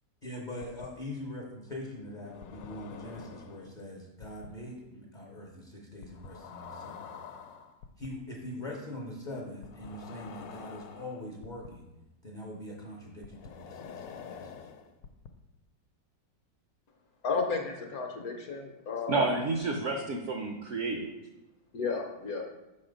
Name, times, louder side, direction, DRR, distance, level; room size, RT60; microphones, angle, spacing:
voice 1, 0.2-7.1 8.0-11.9 12.2-14.6, left 1 dB, 45° left, -1 dB, 0.6 m, -42 dB
sound 1, 0.6-0.9 2.2-3.7 4.2-4.5 6.0-8.1 9.6-11.7 13.2-15.3, left 7 dB, 90° left, 1.3 m, -46 dB
voice 2, 17.2-19.2 21.7-22.4, left 4 dB, 65° left, 3 dB, 1.1 m, -33 dB
voice 3, 19.1-21.1, right 3 dB, 65° right, 2 dB, 0.7 m, -30 dB
6.0 x 4.3 x 5.0 m, 1.0 s
omnidirectional pair, 1.9 m